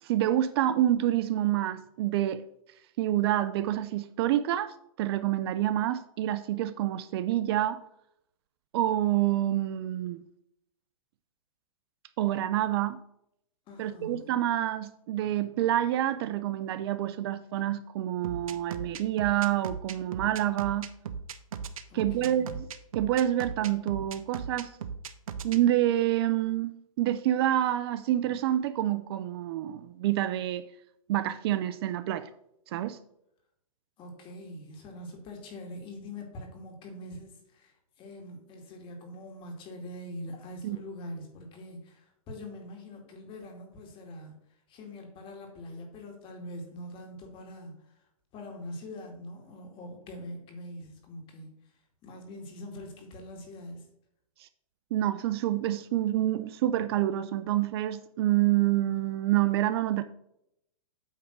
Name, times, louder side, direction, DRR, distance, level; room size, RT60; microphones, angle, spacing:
voice 1, 0.0-2.4 3.0-7.8 8.7-10.2 12.2-13.0 13.8-20.9 21.9-22.7 22.9-24.8 25.4-30.7 31.1-32.3 32.7-33.0 40.6-40.8 54.4-54.5 54.9-60.0, right 13 dB, 45° right, 0.4 m, -27 dB
voice 2, 13.7-14.3 21.9-22.6 34.0-44.4 44.7-48.0 48.3-51.5 52.0-53.9, left 1 dB, 30° left, 2.1 m, -43 dB
sound 1, 18.2-25.6, right 7 dB, 75° right, 0.8 m, -37 dB
8.7 x 3.5 x 6.1 m
hypercardioid pair, 135°, 18 cm